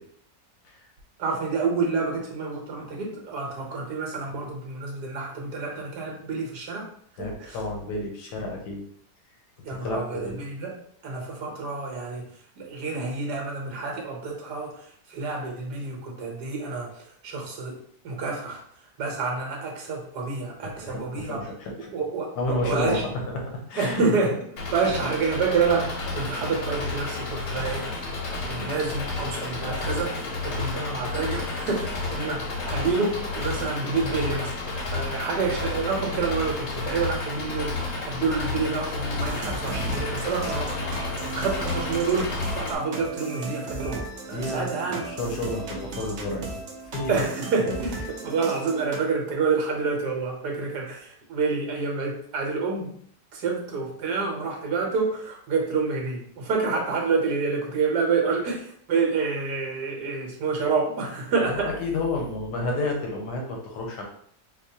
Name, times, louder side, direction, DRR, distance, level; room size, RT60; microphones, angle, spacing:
voice 1, 1.2-6.9 7.2-7.6 9.6-10.7 11.0-12.3 12.6-17.8 18.0-18.6 19.0-21.4 21.9-23.0 23.8-27.9 28.4-45.0 47.1-52.9 53.3-61.7, right 4 dB, 80° right, 1 dB, 1.4 m, -28 dB
voice 2, 7.2-8.8 9.7-10.4 20.6-21.9 22.3-23.0 23.7-24.1 28.6-28.7 44.3-46.6 46.9-47.2 61.3-64.0, left 2 dB, 85° left, 0 dB, 1.5 m, -30 dB
Engine, 24.6-42.8, left 3 dB, 55° left, 0.9 m, -31 dB
sound 1, 39.2-49.0, right 3 dB, 60° right, 0.8 m, -36 dB
4.6 x 2.3 x 2.8 m, 0.63 s
omnidirectional pair, 1.8 m